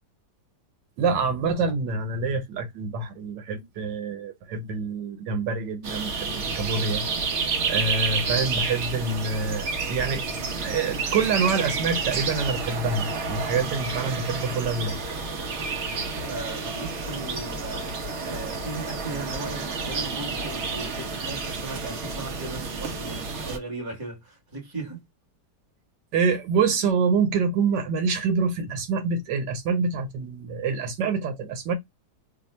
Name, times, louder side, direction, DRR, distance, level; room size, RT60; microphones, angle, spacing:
voice 1, 1.0-7.0 7.7-10.2 10.6-15.0 26.1-31.7, right 4 dB, 90° right, 1.5 m, -26 dB
sound 1, 5.8-23.6, right 4 dB, 55° right, 0.8 m, -30 dB
voice 2, 16.1-25.0, right 3 dB, 15° right, 1.1 m, -37 dB
3.2 x 2.1 x 4.1 m
omnidirectional pair, 1.8 m